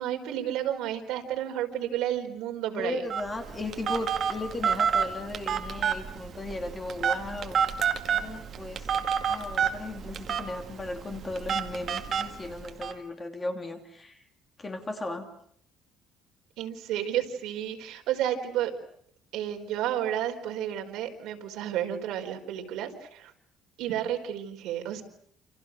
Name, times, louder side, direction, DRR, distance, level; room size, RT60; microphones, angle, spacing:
voice 1, 0.0-3.0 16.6-18.7 19.3-23.3 23.8-25.0, right 11 dB, 70° right, 3 dB, 4.6 m, -31 dB
voice 2, 2.7-7.6 8.1-8.9 9.3-14.2 14.6-15.3, left 2 dB, 15° left, 5 dB, 2.8 m, -36 dB
Telephone, 3.1-12.9, right 7 dB, 35° right, 2.2 m, -29 dB
29.0 x 28.5 x 6.3 m, 0.66 s
cardioid pair, 175°, 0 cm